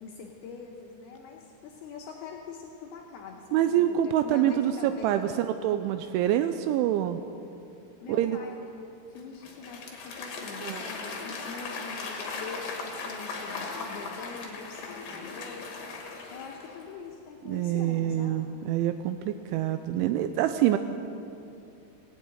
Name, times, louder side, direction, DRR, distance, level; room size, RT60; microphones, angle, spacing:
voice 1, 0.0-5.4 8.0-18.4, left 4 dB, 85° left, 0 dB, 2.2 m, -43 dB
voice 2, 3.5-7.2 8.1-8.4 10.6-10.9 17.4-20.8, right 11 dB, 85° right, 9 dB, 2.8 m, -26 dB
Applause / Crowd, 9.2-16.9, left 4 dB, 55° left, 2.7 m, -38 dB
18.5 x 8.5 x 8.9 m, 2.7 s
omnidirectional pair, 5.8 m